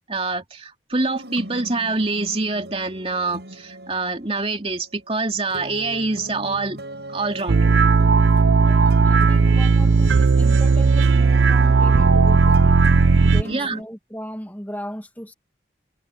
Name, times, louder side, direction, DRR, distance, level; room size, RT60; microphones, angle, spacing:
voice 1, 0.0-6.8 7.1-7.7 13.5-13.8, right 3 dB, 30° right, 2.7 m, -25 dB
sound 1, 0.9-4.9 5.5-13.8, right 1 dB, 70° right, 6.6 m, -38 dB
sound 2, 7.5-13.4, right 4 dB, 90° right, 0.5 m, -15 dB
voice 2, 8.6-12.8 13.2-15.3, equal, 10° left, 1.9 m, -36 dB
head